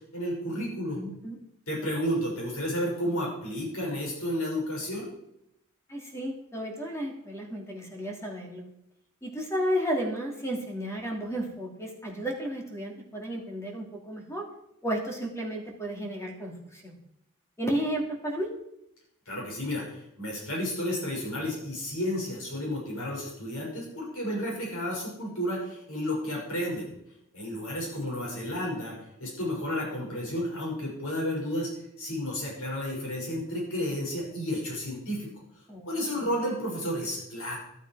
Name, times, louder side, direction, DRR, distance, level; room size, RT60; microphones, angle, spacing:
voice 1, 0.1-1.0 1.7-5.1 19.3-26.9 27.3-31.7 32.0-35.3 35.8-37.6, equal, 80° left, -2 dB, 6.4 m, -32 dB
voice 2, 0.9-1.4 5.9-8.7 9.2-14.5 14.8-17.0 17.6-18.5 35.7-35.8, equal, 15° left, 0 dB, 2.7 m, -33 dB
13.0 x 12.5 x 4.9 m, 0.79 s
head